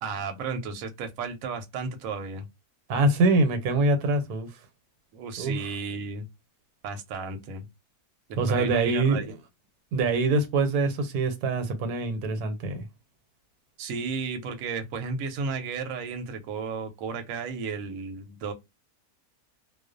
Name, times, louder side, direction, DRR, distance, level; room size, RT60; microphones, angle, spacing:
voice 1, 0.0-2.5 5.1-6.3 6.8-7.7 8.5-9.2 13.8-18.5, right 4 dB, 70° right, 0.9 m, -33 dB
voice 2, 2.9-4.6 5.4-5.6 8.4-9.3 9.9-12.8, right 2 dB, 90° right, 1.2 m, -24 dB
2.4 x 2.2 x 2.4 m
omnidirectional pair, 1.6 m